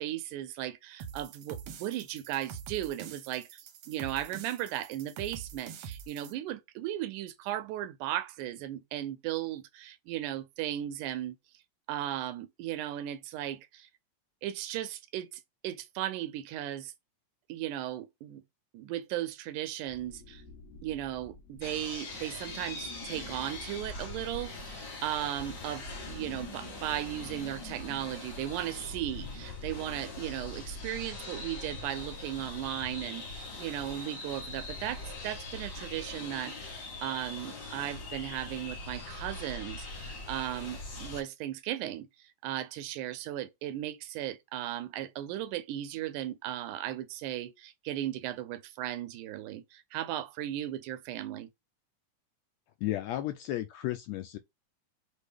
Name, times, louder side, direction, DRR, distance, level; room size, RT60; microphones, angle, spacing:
voice 1, 0.0-3.6 3.9-11.4 11.9-13.9 14.4-16.9 17.5-18.4 18.7-20.4 20.8-51.5, right 12 dB, 90° right, 2.1 m, -36 dB
sound 1, 1.0-6.3, right 7 dB, 75° right, 1.4 m, -45 dB
sound 2, 19.9-31.6, left 2 dB, 65° left, 1.7 m, -53 dB
sound 3, 21.6-41.2, left 2 dB, 50° left, 1.3 m, -42 dB
voice 2, 52.8-54.4, left 14 dB, 80° left, 1.6 m, -33 dB
6.1 x 2.3 x 3.3 m
omnidirectional pair, 3.5 m